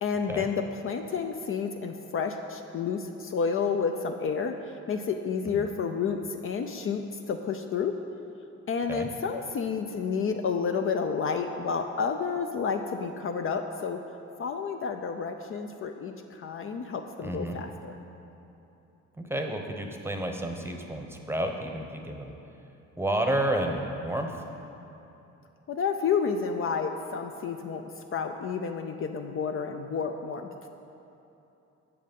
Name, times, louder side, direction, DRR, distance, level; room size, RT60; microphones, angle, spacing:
voice 1, 0.0-4.5 4.9-7.9 8.7-14.0 14.4-17.9 25.7-27.8 28.1-30.5, left 6 dB, 45° left, 5 dB, 0.5 m, -30 dB
voice 2, 17.2-17.6 19.2-22.3 23.0-24.3, right 1 dB, 10° right, 3 dB, 0.8 m, -30 dB
7.8 x 6.5 x 5.3 m, 2.9 s
cardioid pair, 90°, 30 cm